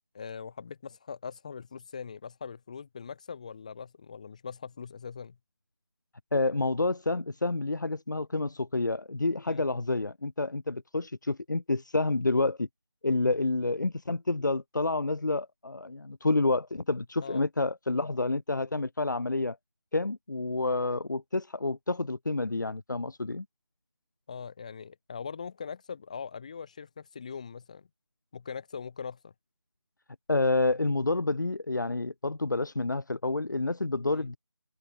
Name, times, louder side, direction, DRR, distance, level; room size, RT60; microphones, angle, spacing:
voice 1, 0.1-5.4 9.5-9.6 17.2-17.4 24.3-27.9 28.3-29.3 34.1-34.3, left 6 dB, 15° left, 6.1 m, -41 dB
voice 2, 6.3-12.7 13.0-19.6 19.9-23.4 30.3-34.4, left 2 dB, 50° left, 1.4 m, -29 dB
figure-of-eight pair, 180°, 13 cm